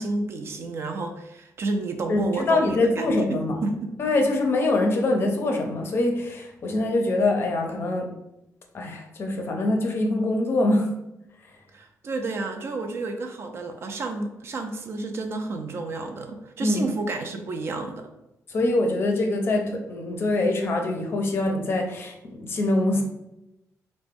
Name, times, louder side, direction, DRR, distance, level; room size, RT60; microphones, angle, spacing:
voice 1, 0.0-3.9 11.7-18.1, right 3 dB, 45° right, 5 dB, 0.4 m, -31 dB
voice 2, 2.1-3.6 4.0-8.1 8.7-10.9 16.6-16.8 18.5-23.0, left 2 dB, 40° left, 2 dB, 0.5 m, -24 dB
3.3 x 2.0 x 3.4 m, 0.88 s
wide cardioid pair, 160°, 6 cm